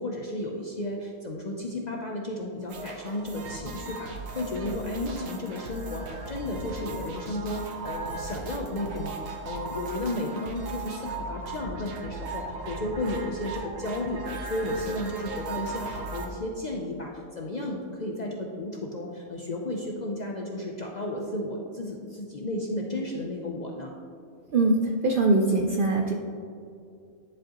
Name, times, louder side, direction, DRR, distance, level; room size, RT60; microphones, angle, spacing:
voice 1, 0.0-14.2 14.5-24.0, left 1 dB, 50° left, 0 dB, 0.5 m, -33 dB
sound 1, 2.7-16.3, right 3 dB, 85° right, 1.2 m, -37 dB
voice 2, 24.5-26.1, right 2 dB, 60° right, 1 dB, 0.5 m, -22 dB
10.5 x 4.9 x 2.9 m, 2.4 s
omnidirectional pair, 1.4 m